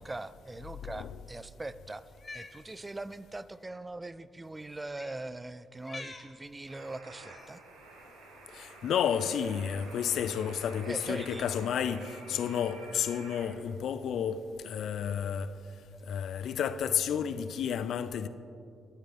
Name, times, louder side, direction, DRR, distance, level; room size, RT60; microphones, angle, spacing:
voice 1, 0.0-2.0 2.3-7.6 10.8-11.5, right 2 dB, 20° right, 0.3 m, -41 dB
voice 2, 0.8-1.2 8.5-15.5 16.1-18.3, left 8 dB, 65° left, 0.3 m, -31 dB
Cat, 2.1-2.6 3.6-3.8 4.9-5.2 5.8-6.3 7.3-7.6, left 3 dB, 30° left, 0.9 m, -46 dB
sound 1, 6.7-13.5, right 3 dB, 80° right, 1.0 m, -50 dB
12.0 x 7.4 x 3.5 m
hypercardioid pair, 45°, 0 cm